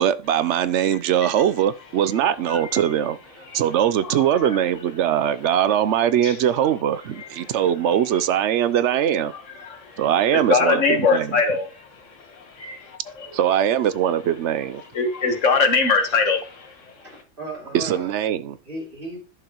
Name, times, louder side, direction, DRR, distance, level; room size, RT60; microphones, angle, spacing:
voice 1, 0.0-3.2 3.5-9.3 10.0-11.4 13.3-14.8 17.7-18.6, right 10 dB, 70° right, 0.9 m, -21 dB
voice 2, 2.5-2.8 3.5-3.6 4.1-4.6 6.2-6.3 7.2-7.3 9.6-9.9 10.3-11.7 12.6-13.0 14.9-16.7, left 4 dB, 80° left, 1.7 m, -22 dB
voice 3, 15.2-15.7 16.1-16.2 17.0-18.1 18.6-19.2, right 1 dB, 45° right, 3.3 m, -36 dB
11.0 x 6.8 x 3.0 m
omnidirectional pair, 1.3 m